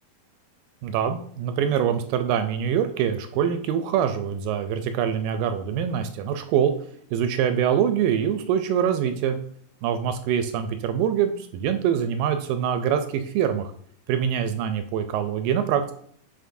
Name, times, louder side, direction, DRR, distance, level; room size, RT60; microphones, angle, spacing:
voice 1, 0.8-6.7 7.1-9.4 9.8-13.7 14.1-15.9, right 8 dB, 80° right, 8 dB, 2.1 m, -24 dB
9.2 x 4.1 x 2.6 m, 0.62 s
omnidirectional pair, 4.2 m